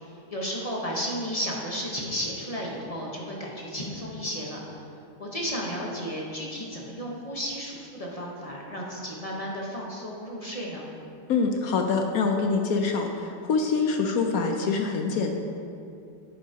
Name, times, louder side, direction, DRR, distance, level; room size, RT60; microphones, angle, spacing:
voice 1, 0.3-4.6 5.2-10.9, equal, 25° left, -3 dB, 0.8 m, -33 dB
voice 2, 11.3-15.3, left 4 dB, 65° left, 3 dB, 0.9 m, -25 dB
10.0 x 8.2 x 2.8 m, 2.6 s
omnidirectional pair, 1.9 m